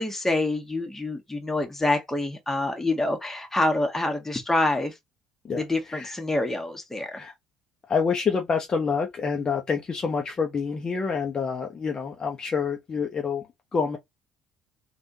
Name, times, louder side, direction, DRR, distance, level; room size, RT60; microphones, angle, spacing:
voice 1, 0.0-4.9 5.5-7.2, left 2 dB, 10° left, 1.2 m, -26 dB
voice 2, 7.9-13.4 13.7-14.0, left 5 dB, 35° left, 0.8 m, -27 dB
3.4 x 2.5 x 2.7 m
hypercardioid pair, 55°, 2 cm